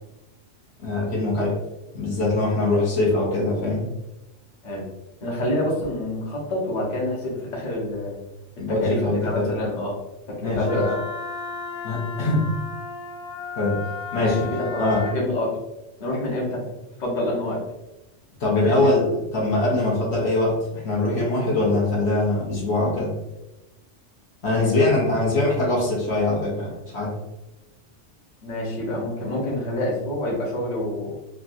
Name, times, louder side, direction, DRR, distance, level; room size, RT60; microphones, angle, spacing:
voice 1, 0.8-1.6 1.9-3.8 8.6-9.5 10.4-10.8 11.8-12.5 13.6-13.8 14.1-14.5 14.8-15.1 18.4-23.1 24.4-27.2, left 2 dB, 65° left, -4 dB, 1.0 m, -22 dB
voice 2, 5.2-8.1 8.7-10.0 10.3-11.0 14.2-15.6 16.0-16.6 17.0-17.6 18.5-18.9 24.5-24.9 28.4-31.1, left 1 dB, 40° left, -4 dB, 0.9 m, -27 dB
Wind instrument woodwind instrument, 10.7-15.2, left 5 dB, 85° left, 1.5 m, -34 dB
3.3 x 2.3 x 2.5 m, 0.96 s
omnidirectional pair, 1.2 m